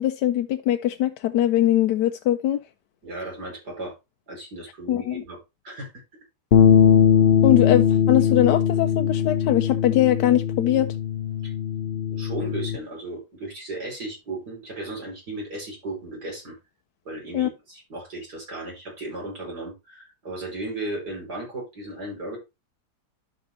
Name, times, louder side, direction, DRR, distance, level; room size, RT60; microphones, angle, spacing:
voice 1, 0.0-2.6 4.9-5.2 7.4-10.9 17.3-17.5, left 12 dB, 85° left, 1.2 m, -21 dB
voice 2, 3.0-3.9 4.3-5.4 5.6-5.9 11.4-11.5 12.1-16.6 17.1-22.4, right 2 dB, 70° right, 5.7 m, -35 dB
sound 1, 6.5-12.8, left 8 dB, 50° left, 0.8 m, -20 dB
12.0 x 5.9 x 2.7 m
omnidirectional pair, 1.8 m